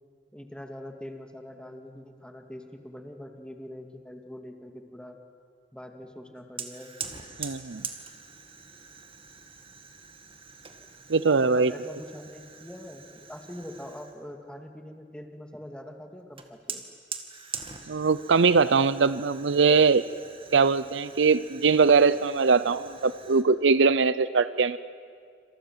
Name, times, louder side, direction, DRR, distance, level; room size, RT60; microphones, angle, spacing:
voice 1, 0.3-5.2 5.7-6.9 10.8-10.9 11.3-16.8, left 1 dB, 5° left, 4 dB, 2.2 m, -43 dB
Fire, 6.6-14.2 16.4-23.4, right 6 dB, 30° right, 2.1 m, -43 dB
voice 2, 7.4-7.8 11.1-11.7 17.9-20.0 20.5-24.8, right 4 dB, 70° right, 16 dB, 0.6 m, -21 dB
27.5 x 27.0 x 7.5 m, 2.2 s
head